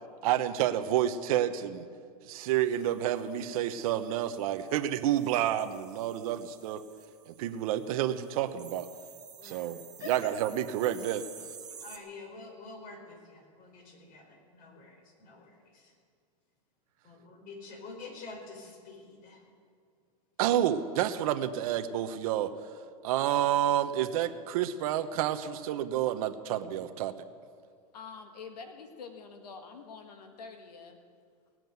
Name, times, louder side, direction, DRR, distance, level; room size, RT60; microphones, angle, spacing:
voice 1, 0.2-1.9 2.2-6.8 7.3-8.9 9.4-11.5 20.4-22.5 23.0-27.1, right 11 dB, 60° right, 10 dB, 1.0 m, -29 dB
sound 1, 2.4-12.0, right 7 dB, 20° right, 1.5 m, -52 dB
voice 2, 10.0-10.3 11.8-15.9 17.0-19.4, left 3 dB, 45° left, 2 dB, 4.8 m, -47 dB
voice 3, 27.9-31.0, left 5 dB, 85° left, 5 dB, 1.7 m, -46 dB
19.5 x 7.7 x 9.3 m, 2.2 s
hypercardioid pair, 120°, 20 cm